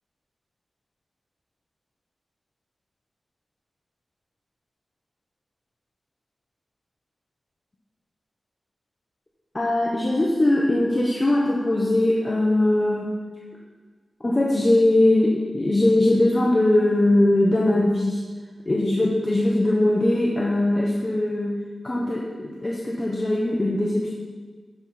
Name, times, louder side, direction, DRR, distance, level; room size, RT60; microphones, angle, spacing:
voice 1, 9.5-13.1 14.2-18.2 18.6-21.6 21.8-24.1, left 1 dB, 30° left, -4 dB, 1.1 m, -21 dB
11.5 x 4.3 x 5.8 m, 1.4 s
wide cardioid pair, 125°, 0 cm